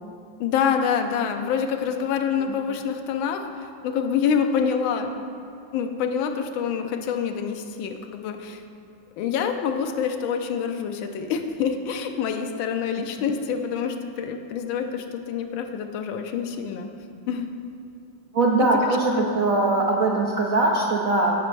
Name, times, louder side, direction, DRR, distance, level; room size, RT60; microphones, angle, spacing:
voice 1, 0.4-5.1 5.7-8.6 9.2-16.9 17.3-17.5 18.6-18.7 19.2-19.3, left 7 dB, 85° left, 5 dB, 1.4 m, -26 dB
voice 2, 18.3-21.3, right 2 dB, 70° right, -1 dB, 0.8 m, -21 dB
14.0 x 5.1 x 3.2 m, 2.8 s
omnidirectional pair, 2.2 m